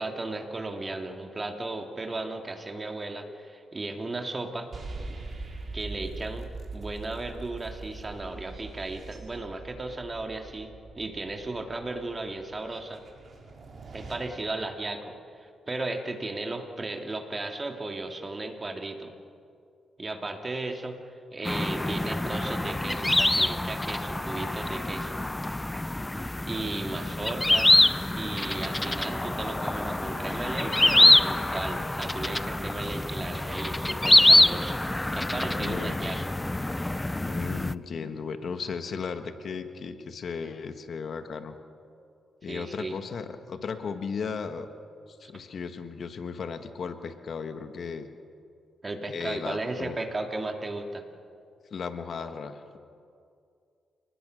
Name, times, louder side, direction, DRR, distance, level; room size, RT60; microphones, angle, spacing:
voice 1, 0.0-4.7 5.7-13.0 13.9-19.1 20.0-21.0 21.3-25.2 26.4-27.7 28.1-34.8 35.1-36.2 42.5-43.0 45.3-45.4 48.8-51.1, right 2 dB, 30° right, 4 dB, 2.6 m, -35 dB
sound 1, 4.7-14.1, right 3 dB, 50° right, 4.8 m, -42 dB
sound 2, 21.5-37.7, left 1 dB, 10° left, 0.5 m, -25 dB
voice 2, 35.6-35.9 37.2-41.6 42.4-44.7 45.1-48.1 49.1-50.0 51.7-52.8, left 5 dB, 60° left, 8 dB, 1.5 m, -35 dB
30.0 x 20.0 x 6.6 m, 2.4 s
cardioid pair, 85°, 0 cm